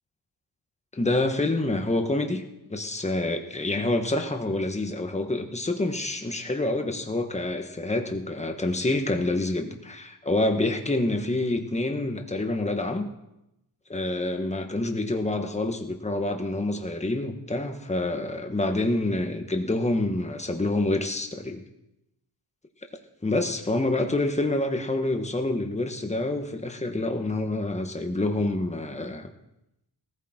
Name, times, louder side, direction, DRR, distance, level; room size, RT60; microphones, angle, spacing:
voice 1, 0.9-2.4 2.7-13.1 13.9-21.6 23.2-29.3, left 2 dB, 15° left, 4 dB, 1.5 m, -27 dB
19.5 x 15.0 x 4.5 m, 0.88 s
wide cardioid pair, 110°, 43 cm